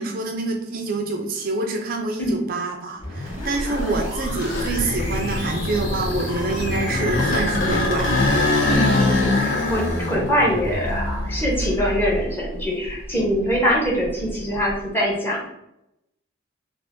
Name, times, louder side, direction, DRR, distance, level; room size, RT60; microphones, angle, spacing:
voice 1, 0.0-8.1, right 3 dB, 45° right, 2 dB, 0.4 m, -26 dB
sound 1, 3.0-12.7, left 1 dB, 40° left, 0.8 m, -34 dB
sound 2, 3.4-12.4 12.8-14.7, left 2 dB, 80° left, 0.7 m, -24 dB
voice 2, 3.4-4.1 8.7-15.5, equal, 10° left, -4 dB, 0.8 m, -24 dB
2.5 x 2.4 x 3.5 m, 0.83 s
head